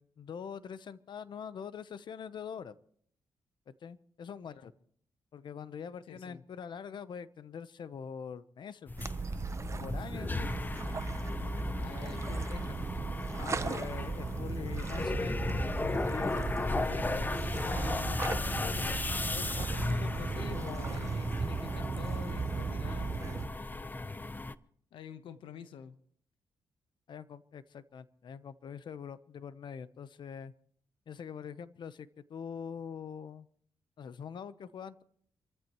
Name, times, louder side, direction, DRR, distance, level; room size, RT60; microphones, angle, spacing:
voice 1, 0.0-2.7 3.7-4.7 5.3-8.9 9.7-10.5 13.3-19.0 19.3-21.1 27.1-30.5 31.1-33.5 34.0-35.0, left 7 dB, 65° left, 14 dB, 0.9 m, -44 dB
voice 2, 6.1-6.4 11.8-12.8 20.3-23.5 24.9-26.0, left 8 dB, 85° left, 11 dB, 1.1 m, -48 dB
sound 1, 8.9-24.5, left 2 dB, 20° left, 0.7 m, -36 dB
sound 2, 9.0-23.5, right 4 dB, 35° right, 0.9 m, -37 dB
28.0 x 14.5 x 3.1 m, 0.62 s
cardioid pair, 75°, 9 cm